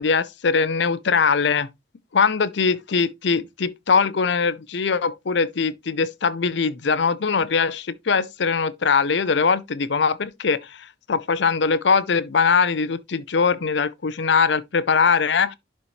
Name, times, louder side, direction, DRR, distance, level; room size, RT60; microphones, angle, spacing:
voice 1, 0.0-1.7 2.1-15.5, left 5 dB, 70° left, 0.6 m, -21 dB
11.0 x 4.2 x 3.1 m
head